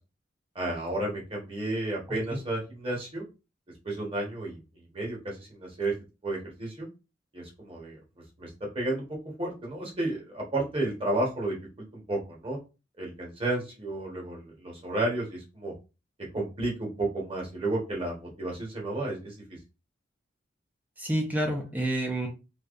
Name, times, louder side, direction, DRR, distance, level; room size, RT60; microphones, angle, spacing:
voice 1, 0.5-3.2 3.8-4.6 4.9-5.9 6.2-6.9 7.3-8.0 8.4-8.5 8.7-12.6 13.0-15.7 16.3-19.3, right 2 dB, 30° right, -2 dB, 1.1 m, -32 dB
voice 2, 2.1-2.4 21.0-22.3, right 1 dB, 10° right, 1 dB, 0.5 m, -29 dB
3.4 x 2.8 x 2.5 m, 0.30 s
head